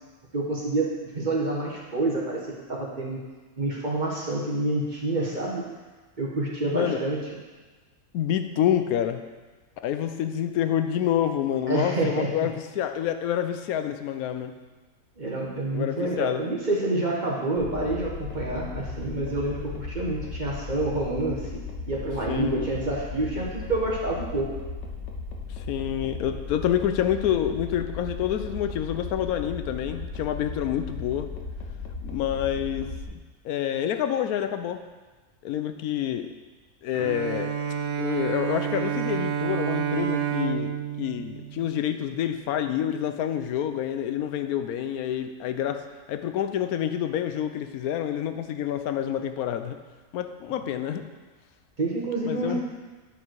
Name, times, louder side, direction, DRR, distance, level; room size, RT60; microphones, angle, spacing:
voice 1, 0.3-3.2 3.6-5.7 6.2-7.3 11.7-12.5 15.2-21.5 21.9-24.5 51.8-52.6, right 2 dB, 30° right, -4 dB, 1.2 m, -28 dB
voice 2, 6.6-7.0 8.1-9.2 9.8-14.5 15.7-16.4 22.3-22.7 25.7-31.3 32.0-32.9 33.4-34.8 35.4-36.3 36.8-37.5 38.0-45.8 46.1-49.8 50.1-51.1 52.2-52.6, left 10 dB, 75° left, 8 dB, 1.0 m, -27 dB
sound 1, 17.6-33.0, left 4 dB, 55° left, 1.2 m, -36 dB
Bowed string instrument, 36.9-42.4, right 9 dB, 65° right, 0.8 m, -29 dB
9.9 x 4.8 x 4.6 m, 1.3 s
omnidirectional pair, 1.6 m